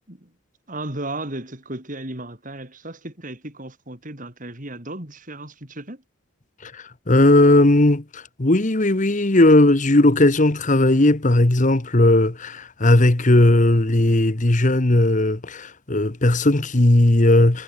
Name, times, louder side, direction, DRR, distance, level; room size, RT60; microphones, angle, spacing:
voice 1, 0.7-6.0, right 1 dB, 40° right, 4.1 m, -35 dB
voice 2, 7.1-17.6, left 1 dB, 35° left, 1.2 m, -17 dB
head